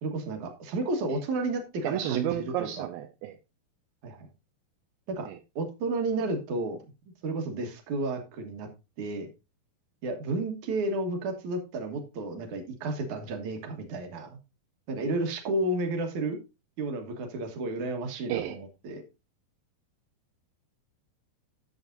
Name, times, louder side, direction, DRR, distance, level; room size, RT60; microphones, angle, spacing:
voice 1, 0.0-2.9 4.0-4.3 5.1-5.3 5.6-6.8 7.2-8.7 9.0-9.3 10.0-14.4 14.9-16.4 16.8-19.0, right 2 dB, 60° right, 5 dB, 2.5 m, -32 dB
voice 2, 1.8-3.4 5.3-5.4 18.3-18.6, right 11 dB, 80° right, 6 dB, 2.1 m, -31 dB
11.5 x 7.1 x 2.6 m, 0.27 s
omnidirectional pair, 4.4 m